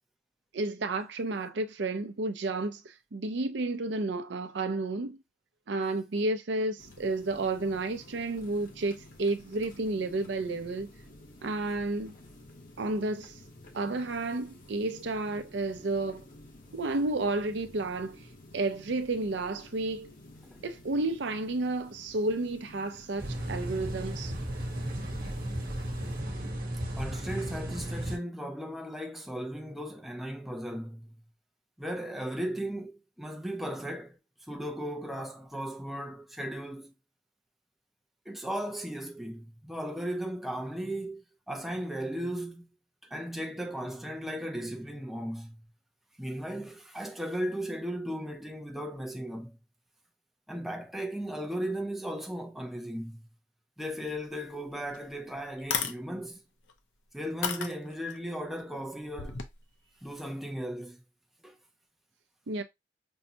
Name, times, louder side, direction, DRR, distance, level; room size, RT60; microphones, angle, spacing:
voice 1, 0.5-5.2 5.7-10.9 11.4-12.2 12.8-13.3 13.7-16.2 16.7-18.2 18.5-20.1 20.6-24.3 62.5-62.6, right 2 dB, 65° right, 0.5 m, -31 dB
sound 1, 6.8-26.2, left 1 dB, 45° left, 0.9 m, -52 dB
sound 2, 23.2-28.2, right 1 dB, 50° right, 1.1 m, -34 dB
voice 2, 26.9-31.1 31.8-34.2 34.5-36.9 38.3-42.7 43.1-45.6 46.2-49.6 50.5-53.3 53.8-56.4 57.1-59.4 60.0-61.0 61.4-61.6, equal, ahead, 0.5 m, -36 dB
sound 3, 54.4-54.5 54.9-55.0 55.6-56.0 56.7-56.8 57.4-58.2 59.1-59.5, left 6 dB, 80° left, 0.7 m, -32 dB
5.3 x 2.2 x 2.7 m
head